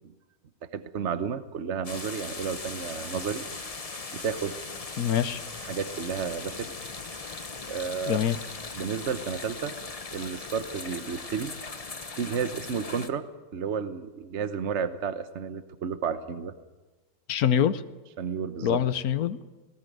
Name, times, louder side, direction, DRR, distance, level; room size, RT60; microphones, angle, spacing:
voice 1, 0.7-3.4 4.1-4.5 5.6-6.7 7.6-8.2 8.7-9.7 10.1-11.5 12.1-13.3 13.5-16.5 18.2-18.8, right 6 dB, 50° right, 11 dB, 1.0 m, -32 dB
sound 1, 1.8-13.1, left 3 dB, 25° left, 0.9 m, -39 dB
voice 2, 5.0-5.4 8.1-8.4 17.3-17.8 18.6-19.4, left 9 dB, 60° left, 13 dB, 1.2 m, -24 dB
19.0 x 18.0 x 9.2 m, 1.2 s
omnidirectional pair, 1.9 m